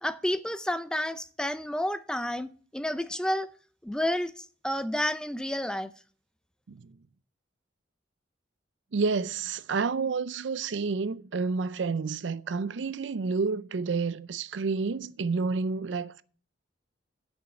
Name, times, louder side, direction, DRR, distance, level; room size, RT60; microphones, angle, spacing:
voice 1, 0.0-3.5 3.8-5.9, left 1 dB, 5° left, 0.4 m, -30 dB
voice 2, 8.9-16.2, right 4 dB, 80° right, 0.5 m, -29 dB
9.5 x 6.3 x 5.9 m
head